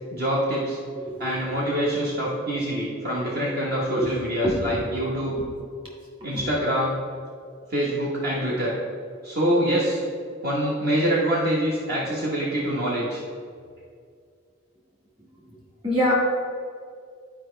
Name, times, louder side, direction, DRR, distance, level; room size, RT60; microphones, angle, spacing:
voice 1, 0.1-0.8 1.2-5.3 6.2-7.0 7.7-8.8 9.2-10.0 10.4-13.2, equal, 50° right, -6 dB, 1.2 m, -25 dB
voice 2, 0.9-1.6 3.2-3.3 3.9-5.0 6.3-6.5 15.5-15.6 15.8-16.1, equal, 25° right, -3 dB, 1.8 m, -27 dB
11.5 x 4.8 x 3.3 m, 2.2 s
head